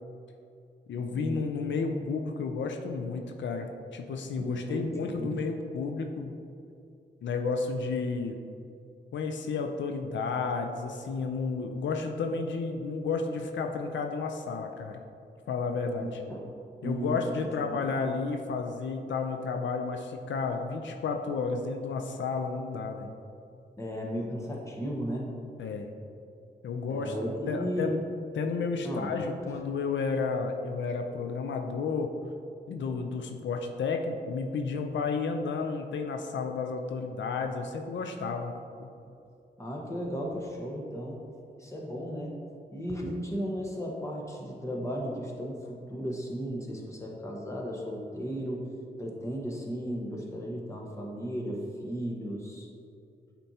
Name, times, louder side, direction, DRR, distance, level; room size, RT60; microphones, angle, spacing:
voice 1, 0.9-6.4 7.2-8.4 9.1-15.0 15.5-16.2 16.8-23.1 25.6-25.9 26.6-27.1 27.5-28.0 28.3-32.1 32.7-38.5 38.8-38.9, left 4 dB, 85° left, 4 dB, 0.5 m, -32 dB
voice 2, 4.4-5.3 16.0-16.5 16.8-17.2 17.6-17.8 23.8-25.3 26.9-27.9 28.8-29.1 39.6-41.2 41.6-42.4 42.7-48.6 49.0-52.7, equal, 15° left, -2 dB, 1.2 m, -35 dB
8.8 x 4.4 x 2.8 m, 2.6 s
cardioid pair, 80°, 19 cm